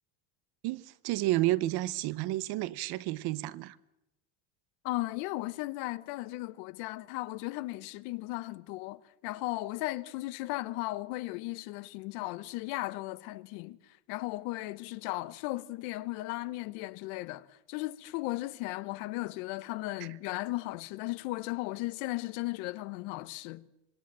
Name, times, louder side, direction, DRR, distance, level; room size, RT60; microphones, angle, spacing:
voice 1, 0.6-3.8, right 17 dB, 55° right, 1.0 m, -31 dB
voice 2, 4.8-23.6, left 19 dB, 85° left, 1.2 m, -36 dB
26.0 x 21.5 x 7.6 m
cardioid pair, 165°, 45 cm